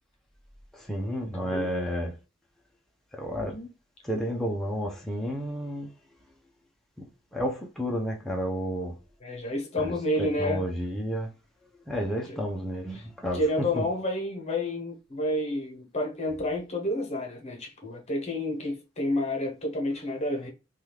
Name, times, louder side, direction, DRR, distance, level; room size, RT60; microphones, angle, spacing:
voice 1, 0.7-2.1 3.1-3.7 4.0-5.9 7.3-8.9 9.8-11.3 11.9-13.8, equal, ahead, 0.5 m, -31 dB
voice 2, 1.4-1.7 9.2-10.6 12.2-12.4 12.9-13.1 13.3-20.5, left 1 dB, 35° left, 0.9 m, -30 dB
3.4 x 2.3 x 2.9 m
head